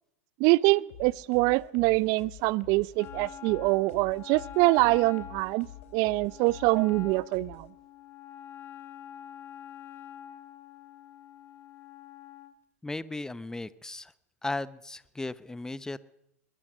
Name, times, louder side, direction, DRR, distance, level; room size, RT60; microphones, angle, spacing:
voice 1, 0.4-5.7 5.9-7.7, right 22 dB, 50° right, 22 dB, 0.7 m, -24 dB
sound 1, 0.9-7.7, left 9 dB, 65° left, 3.7 m, -49 dB
Wind instrument woodwind instrument, 3.0-12.6, left 10 dB, 30° left, 3.0 m, -46 dB
voice 2, 12.8-14.1 14.4-16.0, left 2 dB, 5° left, 16 dB, 1.0 m, -36 dB
22.5 x 20.5 x 6.4 m, 0.80 s
hypercardioid pair, 100°, 8 cm